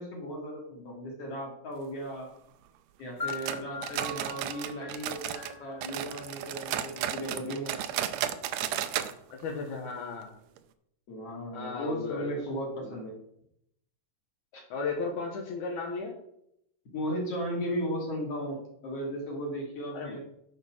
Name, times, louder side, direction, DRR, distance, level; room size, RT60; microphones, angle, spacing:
voice 1, 0.0-2.3 3.0-7.8 11.1-13.1 14.5-14.6 16.9-20.2, equal, 50° left, -1 dB, 3.3 m, -36 dB
sound 1, 3.2-7.0, left 3 dB, 30° left, 1.2 m, -41 dB
sound 2, 3.3-5.5 5.8-9.1 9.4-9.5 9.9-10.0 10.6-10.7, right 11 dB, 90° right, 1.5 m, -34 dB
voice 2, 9.3-10.3 11.5-12.3 12.8-12.9 14.7-16.1 19.9-20.2, left 4 dB, 70° left, 0 dB, 2.6 m, -35 dB
9.9 x 5.6 x 6.1 m, 0.75 s
omnidirectional pair, 3.9 m